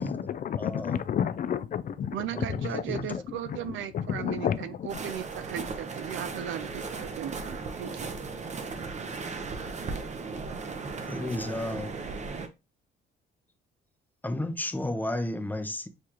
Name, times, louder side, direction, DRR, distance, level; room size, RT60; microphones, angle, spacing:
voice 1, 0.0-4.9, left 8 dB, 45° left, 0.4 m, -32 dB
voice 2, 0.6-1.0 2.3-3.3 11.1-12.0 14.2-15.9, left 1 dB, 10° left, 0.6 m, -33 dB
voice 3, 2.1-8.1, right 10 dB, 75° right, 0.5 m, -37 dB
sound 1, 4.9-12.5, right 4 dB, 35° right, 0.8 m, -36 dB
6.4 x 2.3 x 2.9 m
cardioid pair, 90°, 20 cm